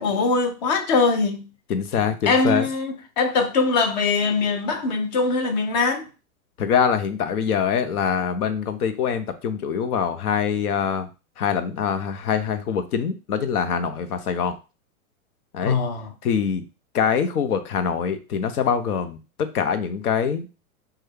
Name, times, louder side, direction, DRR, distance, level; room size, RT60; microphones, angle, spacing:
voice 1, 0.0-1.4 2.3-6.1 15.6-16.1, left 4 dB, 30° left, 0.4 m, -22 dB
voice 2, 1.7-2.7 6.6-11.1 11.4-14.6 15.5-15.7 16.2-16.6 16.9-20.7, left 7 dB, 80° left, 0.7 m, -24 dB
3.2 x 2.3 x 3.3 m
hypercardioid pair, 140°, 44 cm